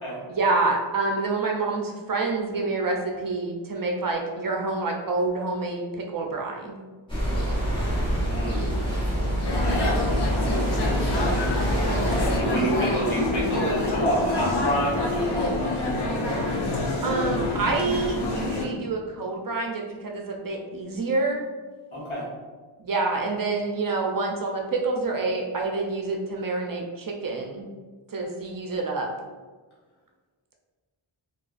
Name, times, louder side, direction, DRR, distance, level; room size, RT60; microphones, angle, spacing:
voice 1, 0.3-6.8 17.0-21.5 22.8-27.7 28.1-29.1, right 3 dB, 45° right, 1 dB, 0.4 m, -27 dB
sound 1, 7.1-12.4, right 1 dB, 10° left, 0.9 m, -26 dB
voice 2, 8.2-8.7 9.6-10.0 10.3-11.4 12.1-15.9 21.9-22.3, equal, 75° left, -7 dB, 1.1 m, -28 dB
sound 2, 9.4-18.7, left 2 dB, 55° left, 0.6 m, -27 dB
2.3 x 2.3 x 2.4 m, 1.4 s
cardioid pair, 45°, 50 cm